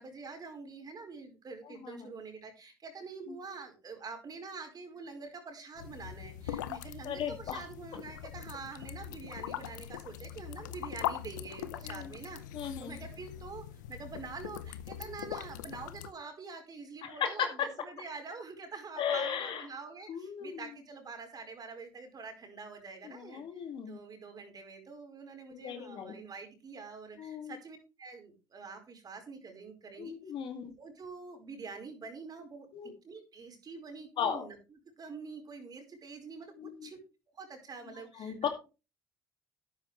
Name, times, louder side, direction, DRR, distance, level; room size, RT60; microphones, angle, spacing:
voice 1, 0.0-30.2 30.6-32.7 33.0-34.6 35.0-37.0 37.3-38.5, right 4 dB, 40° right, 4 dB, 4.8 m, -46 dB
sound 1, 5.8-16.1, left 11 dB, 90° left, 0.7 m, -41 dB
voice 2, 7.0-7.6 11.8-12.1 12.5-13.0 15.0-15.1 17.0-17.5 19.0-19.6 20.1-20.6 23.0-24.0 25.5-26.1 27.2-27.6 30.0-30.7 32.7-32.9 34.2-34.5 36.6-36.9 38.2-38.5, left 8 dB, 60° left, 6 dB, 2.3 m, -36 dB
12.5 x 9.6 x 3.3 m, 0.31 s
hypercardioid pair, 65°, 10 cm